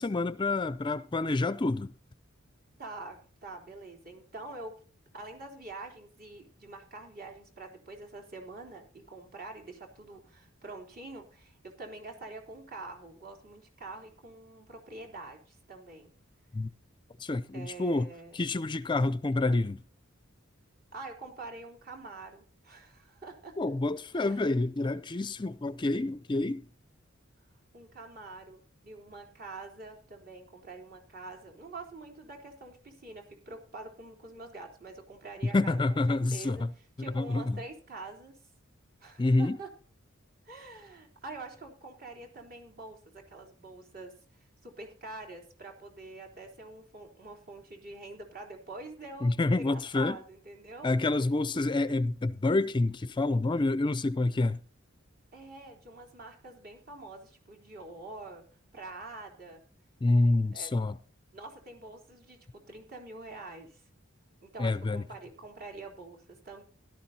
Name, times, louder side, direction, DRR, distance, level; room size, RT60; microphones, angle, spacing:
voice 1, 0.0-1.9 16.5-16.7 17.2-18.1 18.3-19.8 23.6-26.6 35.5-36.7 37.0-37.6 39.2-39.6 49.2-50.2 50.8-54.6 60.0-61.0 64.6-65.0, left 2 dB, 25° left, 0.4 m, -28 dB
voice 2, 2.8-4.8 5.1-16.1 17.5-18.4 20.9-23.6 24.1-24.6 27.7-36.7 37.0-38.4 39.0-39.7 40.4-44.1 44.6-50.9 55.3-58.4 58.7-59.6 60.4-60.7 61.3-63.8 64.4-66.6, right 2 dB, 50° right, 3.6 m, -46 dB
17.0 x 12.0 x 2.8 m
head